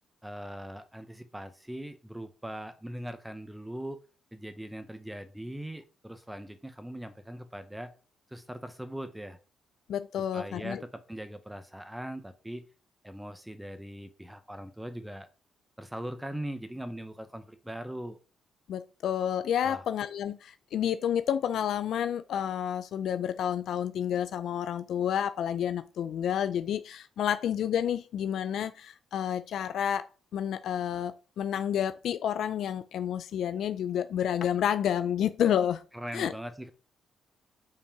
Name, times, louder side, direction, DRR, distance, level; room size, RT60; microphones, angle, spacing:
voice 1, 0.2-4.0 4.3-7.9 8.3-9.4 10.3-12.7 13.0-15.3 15.8-18.2 19.6-19.8 35.9-36.7, right 1 dB, 5° right, 0.8 m, -40 dB
voice 2, 9.9-10.8 18.7-30.1 30.3-35.8 36.1-36.3, left 9 dB, 70° left, 0.4 m, -30 dB
5.7 x 4.6 x 5.9 m
cardioid pair, 90°, 0 cm